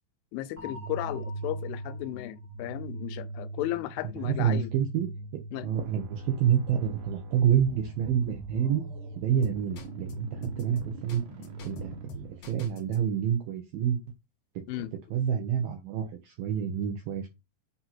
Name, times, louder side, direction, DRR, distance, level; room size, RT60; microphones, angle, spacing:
voice 1, 0.3-4.7 5.5-5.7 14.7-14.9, left 15 dB, 85° left, 3.0 m, -35 dB
sound 1, 0.6-12.5, right 2 dB, 40° left, 1.0 m, -41 dB
voice 2, 4.2-5.1 5.3-8.8 9.2-11.2 11.6-14.0 15.1-17.3, right 9 dB, 80° right, 2.0 m, -28 dB
sound 2, 5.6-12.6, right 3 dB, 65° right, 2.0 m, -48 dB
sound 3, 9.4-10.1 10.4-13.0, equal, 65° left, 1.6 m, -42 dB
8.3 x 2.8 x 5.8 m
omnidirectional pair, 5.4 m